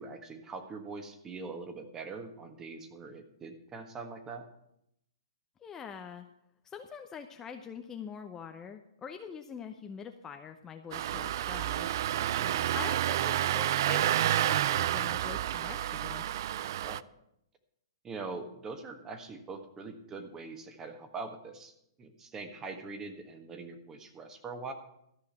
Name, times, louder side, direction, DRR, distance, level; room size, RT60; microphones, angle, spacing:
voice 1, 0.0-4.4 12.3-12.6 16.8-17.0 18.0-24.7, right 4 dB, 20° right, 6 dB, 1.5 m, -43 dB
voice 2, 5.6-6.2 6.6-11.9 12.7-16.3, left 7 dB, 15° left, 5 dB, 0.8 m, -44 dB
Engine starting, 10.9-17.0, right 12 dB, 55° right, 0.4 m, -29 dB
13.5 x 5.7 x 8.6 m, 0.77 s
hypercardioid pair, 130°, 2 cm